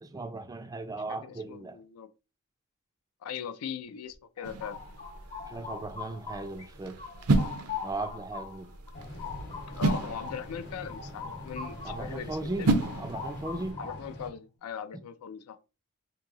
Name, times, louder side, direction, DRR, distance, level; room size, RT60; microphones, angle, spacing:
voice 1, 0.0-1.8 5.5-7.0 7.8-8.7 11.8-13.8, right 2 dB, 15° right, 0.3 m, -37 dB
voice 2, 1.2-2.1 3.2-4.8 9.7-12.7 13.8-15.6, left 7 dB, 75° left, 0.4 m, -40 dB
sound 1, 4.1-6.7 7.0-12.2 12.5-14.2, left 5 dB, 30° left, 0.6 m, -42 dB
sound 2, 4.4-13.7, right 2 dB, 80° right, 0.6 m, -33 dB
sound 3, 8.9-14.3, left 1 dB, 50° left, 0.9 m, -44 dB
2.9 x 2.6 x 3.6 m
head